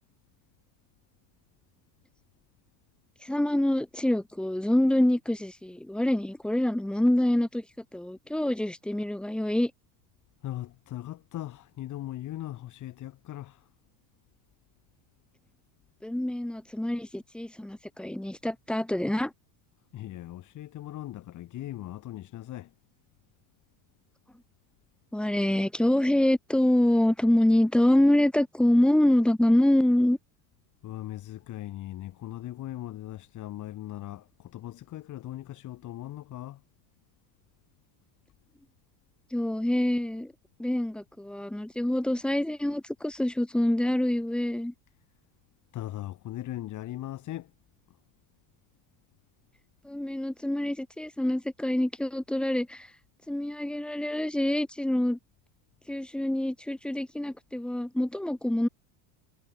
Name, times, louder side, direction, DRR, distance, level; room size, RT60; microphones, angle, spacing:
voice 1, 3.2-7.6 7.9-9.7 16.0-19.3 25.1-30.2 39.3-40.3 40.6-44.7 49.8-52.9 53.3-55.2 55.9-58.7, left 1 dB, ahead, 1.1 m, -26 dB
voice 2, 10.4-13.7 19.9-22.7 30.8-36.6 45.7-47.5, left 14 dB, 35° left, 5.1 m, -39 dB
supercardioid pair, 150°, 48 cm